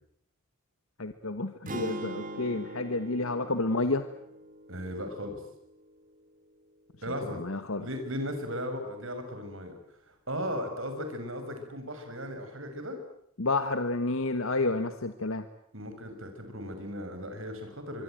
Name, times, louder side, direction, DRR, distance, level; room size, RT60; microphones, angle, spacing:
voice 1, 1.0-4.0 7.3-7.9 13.4-15.4, left 2 dB, 80° left, 9 dB, 1.5 m, -30 dB
sound 1, 1.7-5.8, equal, 40° right, 2.8 m, -42 dB
voice 2, 4.7-5.4 7.0-7.4 7.8-9.7 10.1-13.0 15.7-18.0, equal, 70° right, 7 dB, 6.3 m, -36 dB
25.0 x 23.5 x 9.2 m, 0.73 s
head